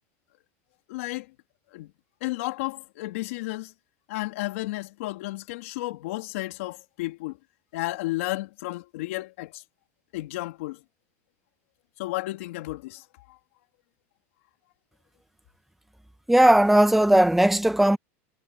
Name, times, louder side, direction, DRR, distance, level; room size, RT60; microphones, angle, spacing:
voice 1, 0.9-1.3 1.7-1.9 2.2-3.7 4.1-7.4 7.7-9.6 10.1-10.8 12.0-13.4, left 19 dB, 75° left, 3.3 m, -32 dB
voice 2, 16.3-18.0, right 1 dB, 5° right, 1.0 m, -17 dB
supercardioid pair, 145°, 7 cm